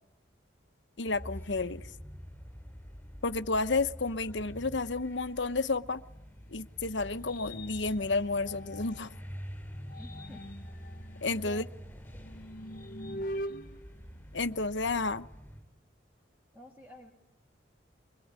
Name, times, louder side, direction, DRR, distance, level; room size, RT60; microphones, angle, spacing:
voice 1, 1.0-1.9 3.2-6.0 6.5-9.1 11.2-11.6 14.3-15.3, left 3 dB, 70° left, 1.1 m, -31 dB
sound 1, 1.1-15.6, equal, 10° left, 7.5 m, -47 dB
sound 2, 6.1-9.2 9.7-14.9, equal, 50° left, 1.1 m, -44 dB
voice 2, 10.0-10.4 11.4-11.7 13.3-13.6 16.5-17.1, right 1 dB, 10° right, 3.1 m, -50 dB
25.0 x 23.5 x 9.7 m
head